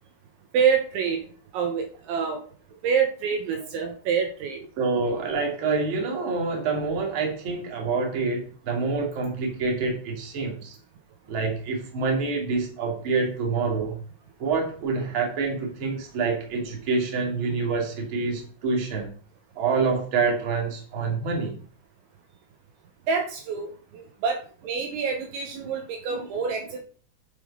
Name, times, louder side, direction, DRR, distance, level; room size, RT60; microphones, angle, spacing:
voice 1, 0.5-1.2 1.5-2.4 2.8-4.6 23.1-24.4 24.6-26.8, right 6 dB, 75° right, 4 dB, 3.3 m, -26 dB
voice 2, 4.8-10.8 11.3-14.0 14.4-19.1 19.5-21.5 26.1-26.3 26.6-26.7, right 4 dB, 35° right, 1 dB, 2.5 m, -27 dB
11.5 x 5.7 x 5.5 m, 0.43 s
omnidirectional pair, 6.0 m